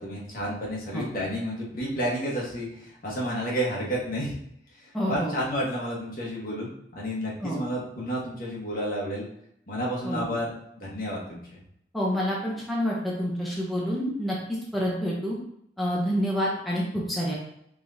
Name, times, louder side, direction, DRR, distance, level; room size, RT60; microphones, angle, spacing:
voice 1, 0.0-4.4 4.8-9.3 9.7-11.4, equal, 50° left, -4 dB, 1.2 m, -31 dB
voice 2, 4.9-5.3 7.4-7.6 10.0-10.3 11.9-14.4 14.7-15.4 15.8-17.3, equal, ahead, -5 dB, 0.7 m, -28 dB
4.7 x 3.5 x 2.7 m, 0.73 s
head